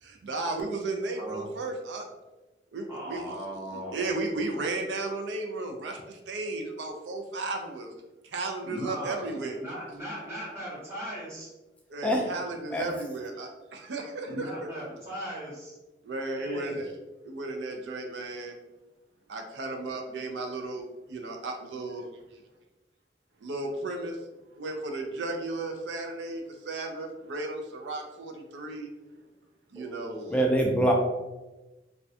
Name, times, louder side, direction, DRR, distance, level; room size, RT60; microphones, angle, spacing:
voice 1, 0.0-2.1 2.7-7.9 8.2-9.6 11.9-14.7 16.0-16.9 17.2-18.5 19.3-22.4 23.4-24.3 24.5-28.9 29.7-30.1, right 2 dB, 80° right, 3 dB, 0.4 m, -34 dB
voice 2, 2.9-4.1 8.6-11.5 14.3-15.7 16.3-16.8 29.7-30.7, equal, 15° right, -9 dB, 0.8 m, -38 dB
voice 3, 30.3-30.9, right 1 dB, 5° left, 0 dB, 0.3 m, -23 dB
2.3 x 2.1 x 2.6 m, 1.1 s
head